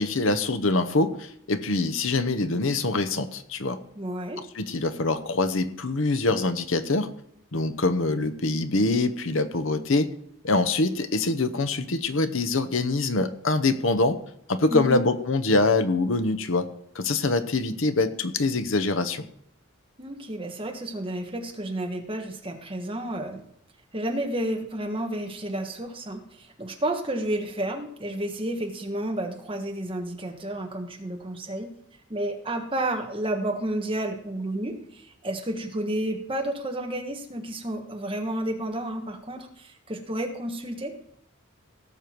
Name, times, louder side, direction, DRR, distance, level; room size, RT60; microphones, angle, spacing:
voice 1, 0.0-3.8 4.6-7.1 7.5-10.1 10.4-14.2 14.5-16.7 16.9-19.2, left 3 dB, 70° left, 10 dB, 0.9 m, -24 dB
voice 2, 3.9-4.4 14.7-15.0 20.0-23.4 23.9-31.7 32.1-40.9, right 1 dB, 25° right, 3 dB, 1.5 m, -31 dB
17.5 x 6.9 x 4.6 m, 0.71 s
head